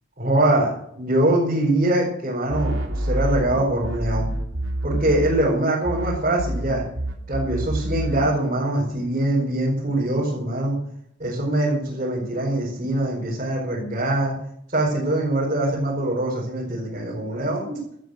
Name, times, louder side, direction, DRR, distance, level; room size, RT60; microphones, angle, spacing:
voice 1, 0.2-4.3 4.8-6.8 7.3-10.8 11.2-14.3 14.7-17.8, right 1 dB, 35° right, -6 dB, 4.9 m, -23 dB
sound 1, 2.5-5.6 5.8-8.4, right 1 dB, 70° right, 2.9 m, -27 dB
13.5 x 12.5 x 6.5 m, 0.70 s
head